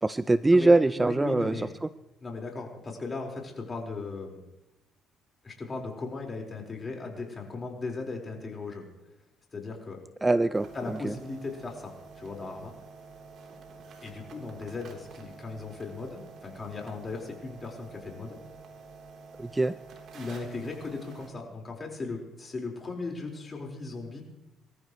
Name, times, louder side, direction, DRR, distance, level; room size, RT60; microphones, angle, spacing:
voice 1, 0.0-1.9 10.2-11.1 19.4-19.7, right 2 dB, 15° right, 14 dB, 0.5 m, -23 dB
voice 2, 1.0-1.7 2.2-4.4 5.4-8.8 9.5-10.0 10.7-12.7 14.0-18.4 20.1-24.2, left 3 dB, 30° left, 0 dB, 4.6 m, -37 dB
sound 1, 10.5-21.3, right 4 dB, 60° right, 3.5 m, -49 dB
24.5 x 14.0 x 3.2 m, 0.94 s
cardioid pair, 95°, 0 cm